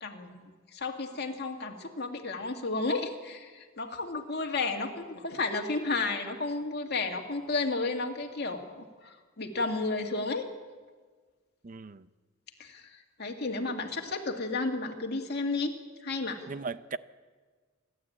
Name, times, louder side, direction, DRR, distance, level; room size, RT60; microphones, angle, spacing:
voice 1, 0.0-10.5 12.6-15.7 16.0-16.4, left 3 dB, 50° left, 2.1 m, -32 dB
voice 2, 11.6-12.1 16.5-17.0, right 4 dB, 40° right, 0.6 m, -37 dB
27.5 x 12.0 x 8.7 m
head